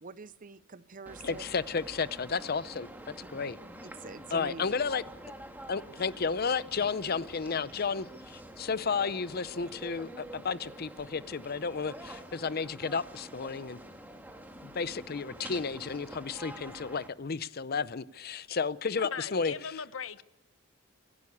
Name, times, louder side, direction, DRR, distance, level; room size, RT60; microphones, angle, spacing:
voice 1, 0.0-1.4 3.2-3.3 3.8-4.8, right 3 dB, 40° right, 15 dB, 0.7 m, -46 dB
sound 1, 1.1-17.1, right 1 dB, 10° right, 1.8 m, -47 dB
voice 2, 1.2-2.9 3.3-3.6 4.3-5.0 5.7-13.8 14.6-19.5, left 5 dB, 50° left, 17 dB, 0.6 m, -32 dB
voice 3, 19.0-20.2, left 6 dB, 75° left, 14 dB, 0.9 m, -39 dB
26.5 x 11.5 x 8.5 m, 0.98 s
head